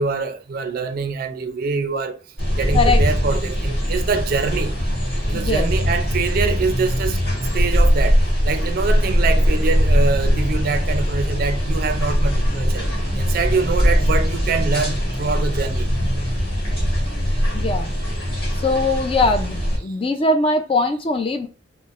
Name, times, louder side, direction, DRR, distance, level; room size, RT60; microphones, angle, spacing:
voice 1, 0.0-2.2 2.5-4.8 5.3-7.2 7.5-12.9 13.1-15.9, right 4 dB, 50° right, 0.4 m, -24 dB
sound 1, 2.4-19.8, equal, 55° left, 1.4 m, -20 dB
voice 2, 5.3-5.7 17.5-17.9 18.6-21.5, left 2 dB, 30° left, 0.4 m, -21 dB
4.0 x 2.0 x 2.4 m
head